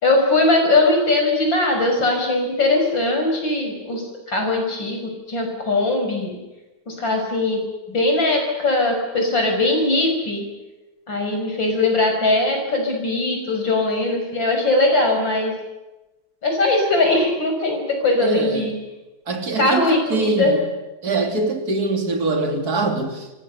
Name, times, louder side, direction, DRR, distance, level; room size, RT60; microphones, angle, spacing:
voice 1, 0.0-5.0 5.3-6.4 6.9-7.6 7.9-10.4 11.1-15.5 16.4-18.8 19.6-20.5, left 2 dB, 60° left, 3 dB, 6.9 m, -20 dB
voice 2, 18.2-18.7 19.3-20.6 21.0-23.4, right 3 dB, 45° right, 5 dB, 3.3 m, -23 dB
26.5 x 25.5 x 6.9 m, 1.1 s
omnidirectional pair, 2.3 m